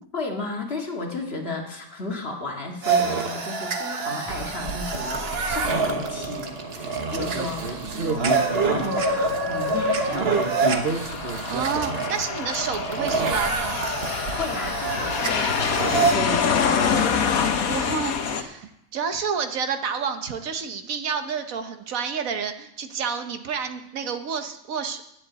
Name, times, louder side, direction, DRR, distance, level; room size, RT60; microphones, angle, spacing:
voice 1, 0.1-10.4 14.4-17.4, left 3 dB, 45° left, 0 dB, 2.1 m, -33 dB
sound 1, 2.8-16.2, right 4 dB, 45° right, 1.3 m, -26 dB
sound 2, 4.2-10.2, left 1 dB, 15° left, 2.4 m, -43 dB
voice 2, 7.8-8.4 11.5-13.8 17.6-25.1, right 6 dB, 70° right, 8 dB, 1.3 m, -30 dB
Aircraft, 8.2-18.4, left 6 dB, 80° left, 1.4 m, -27 dB
10.5 x 7.7 x 7.9 m, 0.81 s
omnidirectional pair, 1.5 m